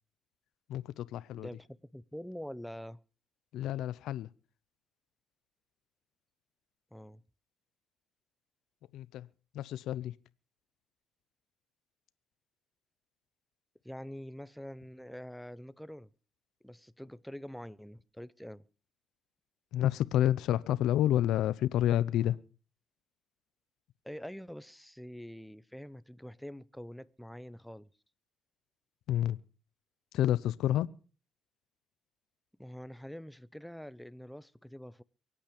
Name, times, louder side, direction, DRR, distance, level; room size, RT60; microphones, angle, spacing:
voice 1, 0.7-1.5 3.5-4.3 8.9-9.3 9.5-10.1 19.7-22.4 29.1-29.4 30.1-30.9, left 12 dB, 85° left, 0.6 m, -29 dB
voice 2, 1.4-3.0 6.9-7.2 13.8-16.1 16.6-18.6 24.0-27.9 32.6-35.0, equal, ahead, 0.7 m, -45 dB
23.5 x 8.7 x 5.1 m
cardioid pair, 90°, 0 cm